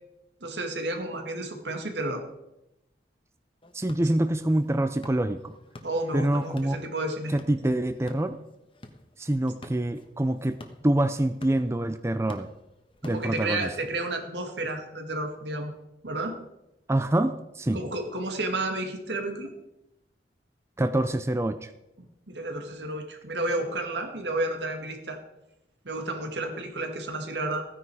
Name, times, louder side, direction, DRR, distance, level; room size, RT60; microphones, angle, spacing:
voice 1, 0.4-2.2 5.8-7.3 13.0-15.7 16.0-16.3 17.7-19.5 22.0-25.2 25.8-27.7, right 2 dB, 85° right, 5 dB, 2.0 m, -31 dB
sound 1, 3.6-13.8, left 1 dB, 30° left, 1.2 m, -49 dB
voice 2, 3.7-5.5 6.1-6.8 7.3-8.4 9.2-10.6 10.8-12.5 13.0-13.7 16.9-17.8 20.8-21.7, right 1 dB, 15° right, 10 dB, 0.5 m, -26 dB
15.0 x 9.8 x 4.8 m, 0.89 s
head